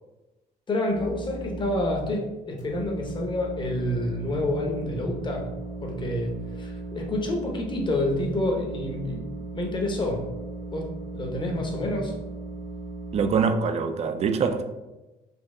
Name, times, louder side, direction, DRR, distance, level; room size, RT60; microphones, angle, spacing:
voice 1, 0.7-5.4 5.8-9.3 9.5-10.2 10.7-12.1, left 1 dB, 25° left, 1 dB, 0.9 m, -28 dB
sound 1, 0.9-2.1 2.6-13.4, right 3 dB, 45° left, 1.3 m, -37 dB
voice 2, 13.1-14.6, right 5 dB, 40° right, 8 dB, 0.4 m, -24 dB
4.3 x 2.8 x 3.7 m, 1.1 s
cardioid pair, 110°, 17 cm